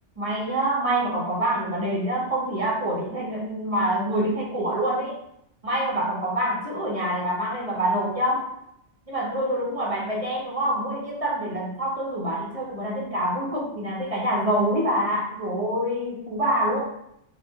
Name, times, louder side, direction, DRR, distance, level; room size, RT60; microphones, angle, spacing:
voice 1, 0.2-5.2 5.6-8.5 9.1-16.8, right 1 dB, 40° right, -4 dB, 0.5 m, -26 dB
3.0 x 2.1 x 3.2 m, 0.77 s
omnidirectional pair, 1.2 m